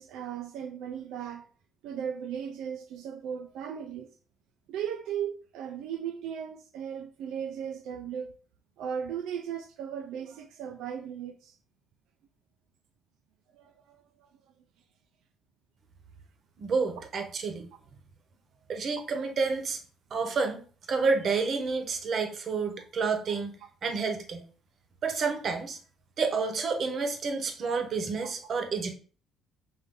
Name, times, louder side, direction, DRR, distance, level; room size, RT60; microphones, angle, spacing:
voice 1, 0.0-1.5 1.8-4.1 4.7-8.4 8.8-11.6 13.5-14.3, right 8 dB, 80° right, 0.4 m, -37 dB
voice 2, 16.6-17.7 18.7-19.8 20.1-20.6 20.9-23.5 23.8-24.5 25.0-25.8 26.2-28.9, right 4 dB, 45° right, 0.9 m, -29 dB
5.2 x 2.6 x 3.7 m
cardioid pair, 125°, 0 cm